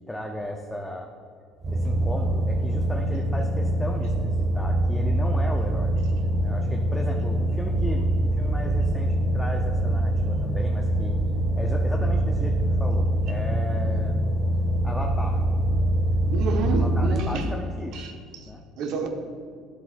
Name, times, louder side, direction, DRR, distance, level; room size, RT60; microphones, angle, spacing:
voice 1, 0.1-1.1 1.7-4.2 4.5-5.9 6.4-11.2 11.6-14.2 14.8-15.4 16.8-18.0 18.5-18.6, equal, 5° left, 1 dB, 0.6 m, -35 dB
sound 1, 1.6-17.2, right 1 dB, 35° right, 1.5 m, -24 dB
sound 2, 15.5-16.8, equal, 25° left, 1.1 m, -40 dB
voice 2, 16.3-17.5 17.9-18.5 18.8-19.1, right 4 dB, 65° right, 4 dB, 1.0 m, -30 dB
12.5 x 7.6 x 2.5 m, 2.1 s
cardioid pair, 110°, 0 cm